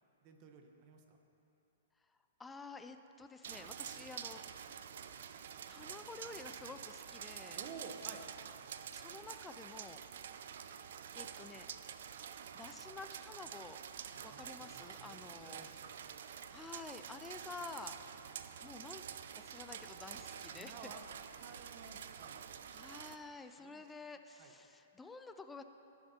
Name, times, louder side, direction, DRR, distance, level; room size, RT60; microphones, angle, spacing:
voice 1, 0.2-1.2 3.9-4.1 7.5-8.3 14.1-15.2 15.4-16.1 20.5-21.0 21.3-22.4 23.6-23.8 24.4-24.5, right 5 dB, 45° right, 4 dB, 1.0 m, -53 dB
voice 2, 2.4-4.8 5.7-7.6 8.9-10.0 11.1-11.7 12.5-13.8 14.2-15.6 16.5-18.0 18.6-19.0 19.3-20.9 22.7-25.6, left 3 dB, 10° left, 8 dB, 0.4 m, -50 dB
sound 1, 3.4-23.2, right 8 dB, 70° right, 0.4 m, -48 dB
16.5 x 6.6 x 2.9 m, 2.9 s
hypercardioid pair, 125°, 0 cm